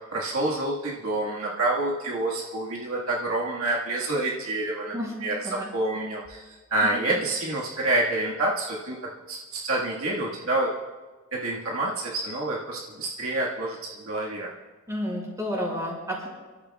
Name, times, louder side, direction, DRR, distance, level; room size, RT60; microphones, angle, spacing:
voice 1, 0.1-9.0 9.3-10.7 11.3-14.5, right 2 dB, 70° right, -3 dB, 1.7 m, -28 dB
voice 2, 14.9-16.3, equal, 15° right, -4 dB, 5.4 m, -31 dB
28.5 x 13.5 x 2.3 m, 1.3 s
head